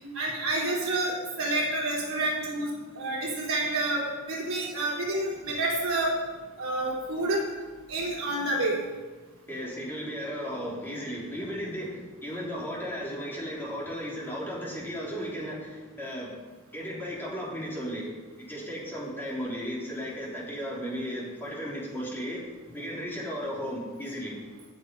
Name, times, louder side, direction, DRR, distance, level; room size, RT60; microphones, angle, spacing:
voice 1, 0.1-6.1 6.6-7.4 7.9-8.8, right 2 dB, 65° right, -4 dB, 3.8 m, -29 dB
voice 2, 9.5-16.3 16.7-18.1 18.4-22.4 22.7-24.4, equal, 10° left, -5 dB, 3.4 m, -35 dB
17.5 x 6.6 x 5.3 m, 1.3 s
head